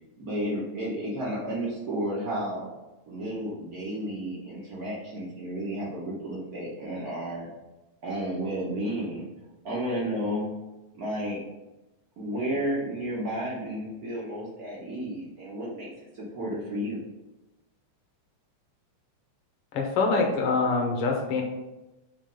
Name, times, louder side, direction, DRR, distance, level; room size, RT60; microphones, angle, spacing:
voice 1, 0.2-2.7 3.1-7.5 8.0-9.3 9.6-10.5 10.9-11.4 12.2-17.0, right 1 dB, 85° right, -6 dB, 0.8 m, -32 dB
voice 2, 19.7-21.4, left 3 dB, 65° left, 1 dB, 1.5 m, -25 dB
7.2 x 3.1 x 5.2 m, 1.0 s
omnidirectional pair, 3.5 m